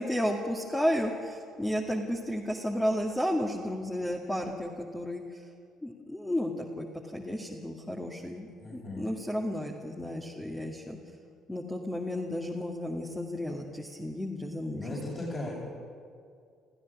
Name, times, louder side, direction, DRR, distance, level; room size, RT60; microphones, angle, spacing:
voice 1, 0.0-5.4 5.8-6.9 7.1-11.0 11.5-14.8 15.1-15.3, equal, 10° left, 0 dB, 2.1 m, -32 dB
voice 2, 8.6-9.1 14.7-15.5, left 2 dB, 30° left, -6 dB, 6.9 m, -37 dB
28.5 x 15.5 x 6.1 m, 2.3 s
figure-of-eight pair, 50°, 0 cm